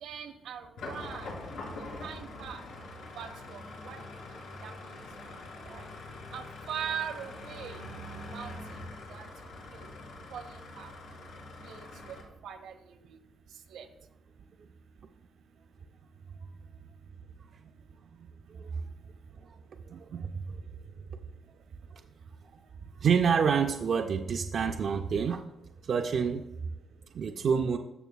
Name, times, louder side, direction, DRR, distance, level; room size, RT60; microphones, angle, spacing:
voice 1, 0.0-1.3 2.0-2.6 3.2-4.0 4.6-4.7 5.7-5.8 6.3-7.8 8.3-8.5 9.1-9.3 9.7-9.9 10.3-10.4 10.8-10.9 11.6-12.2 12.4-12.8 13.7-13.9, right 8 dB, 80° right, 7 dB, 0.8 m, -40 dB
sound 1, 0.8-12.2, left 2 dB, 80° left, 2.4 m, -44 dB
voice 2, 19.8-20.6 22.5-22.6 23.0-25.4 25.8-26.4 27.1-27.8, right 6 dB, 45° right, 5 dB, 0.3 m, -28 dB
13.5 x 6.0 x 2.2 m, 0.90 s
cardioid pair, 180°, 0 cm